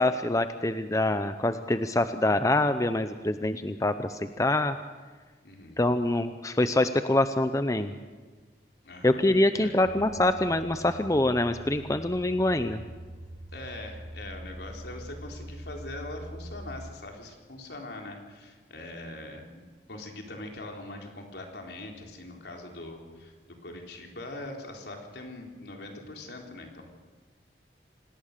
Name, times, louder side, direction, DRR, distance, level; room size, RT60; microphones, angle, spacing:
voice 1, 0.0-4.8 5.8-7.9 9.0-12.8, left 1 dB, 20° left, 10 dB, 0.7 m, -25 dB
voice 2, 5.4-5.8 8.8-9.2 9.5-10.2 13.5-19.6 19.9-23.3 23.6-26.8, left 2 dB, 70° left, 2 dB, 3.9 m, -42 dB
sound 1, 9.8-16.9, right 1 dB, 30° right, 1.2 m, -43 dB
26.0 x 19.0 x 6.8 m, 1.4 s
head